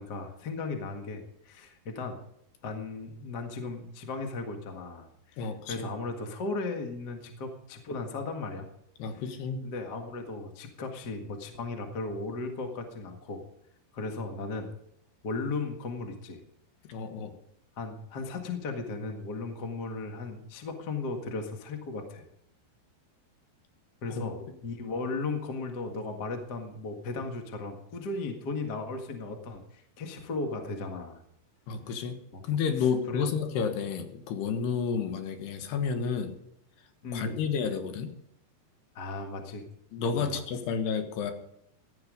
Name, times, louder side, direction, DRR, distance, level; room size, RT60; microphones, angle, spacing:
voice 1, 0.0-2.2 2.6-8.7 9.6-13.4 13.9-14.7 15.2-16.4 17.8-22.2 24.0-24.4 24.6-31.2 32.3-32.4 33.1-33.2 37.0-37.3 38.9-39.6 40.1-40.4, left 3 dB, 50° left, 4 dB, 1.2 m, -36 dB
voice 2, 5.4-5.9 9.0-9.6 16.9-17.3 24.1-24.3 31.7-32.2 32.4-36.4 37.1-38.1 39.9-41.3, left 6 dB, 75° left, 7 dB, 3.4 m, -31 dB
16.0 x 11.5 x 5.3 m, 0.74 s
omnidirectional pair, 4.8 m